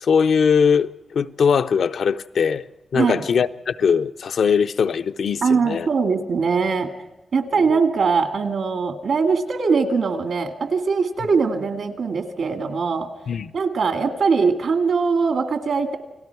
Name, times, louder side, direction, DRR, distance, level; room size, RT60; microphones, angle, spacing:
voice 1, 0.0-2.6 2.9-5.9 7.7-7.8 13.3-13.5, left 6 dB, 75° left, 0.6 m, -20 dB
voice 2, 2.9-3.2 5.4-6.9 7.3-13.1 13.5-16.0, right 5 dB, 70° right, 2.0 m, -21 dB
29.5 x 19.0 x 4.7 m
wide cardioid pair, 170°, 0 cm